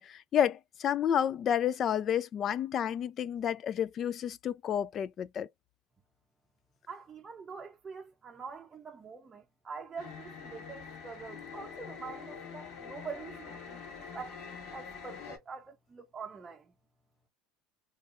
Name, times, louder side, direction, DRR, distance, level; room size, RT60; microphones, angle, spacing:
voice 1, 0.0-5.5, left 9 dB, 35° left, 0.3 m, -30 dB
voice 2, 6.9-13.8 14.1-16.6, right 5 dB, 20° right, 0.7 m, -45 dB
sound 1, 10.0-15.4, left 6 dB, 65° left, 1.8 m, -45 dB
3.6 x 3.1 x 2.5 m
supercardioid pair, 125°, 0 cm